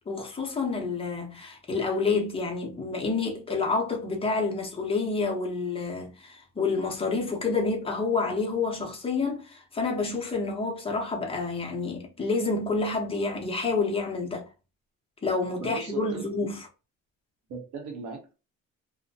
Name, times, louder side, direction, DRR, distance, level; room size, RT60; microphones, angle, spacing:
voice 1, 0.1-14.5 15.2-16.7, left 4 dB, 20° left, 0.7 m, -28 dB
voice 2, 15.5-16.3 17.5-18.3, right 4 dB, 80° right, 1.0 m, -38 dB
2.7 x 2.1 x 2.7 m
cardioid pair, 160°, 30 cm